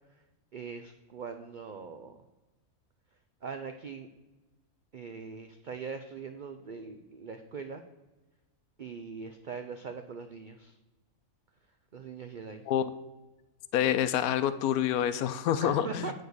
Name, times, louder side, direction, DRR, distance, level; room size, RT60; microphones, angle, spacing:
voice 1, 0.5-2.2 3.4-4.1 4.9-7.8 8.8-10.8 11.9-12.6 15.6-16.2, right 5 dB, 75° right, 7 dB, 0.4 m, -41 dB
voice 2, 13.7-16.1, left 10 dB, 85° left, 12 dB, 1.1 m, -27 dB
9.2 x 4.3 x 6.5 m, 1.1 s
omnidirectional pair, 1.5 m